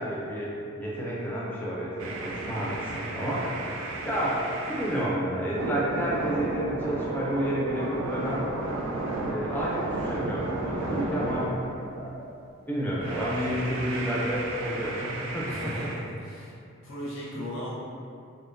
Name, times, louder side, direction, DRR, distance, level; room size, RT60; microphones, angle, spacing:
voice 1, 0.0-3.5 4.1-4.4 4.7-8.5 9.3-11.5 12.7-15.9, equal, 10° left, -6 dB, 0.3 m, -30 dB
sound 1, 2.0-5.2 5.6-12.2 13.0-16.0, right 2 dB, 80° right, 0.3 m, -33 dB
voice 2, 15.5-16.6 16.8-17.7, left 1 dB, 70° left, -7 dB, 0.7 m, -36 dB
2.5 x 2.1 x 2.4 m, 2.5 s
head